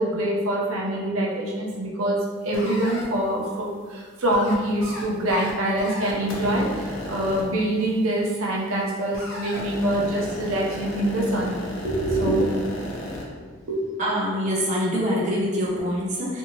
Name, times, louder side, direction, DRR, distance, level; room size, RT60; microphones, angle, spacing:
voice 1, 0.0-11.5 11.8-12.6 13.7-14.0, right 1 dB, 80° right, -3 dB, 0.6 m, -25 dB
sound 1, 2.5-3.0 4.3-4.5 4.8-5.0 5.3-5.5 5.8-7.4 9.1-13.2, left 1 dB, 60° left, 0.6 m, -34 dB
voice 2, 14.0-16.4, equal, 35° right, -5 dB, 0.5 m, -25 dB
2.6 x 2.6 x 2.8 m, 1.5 s
head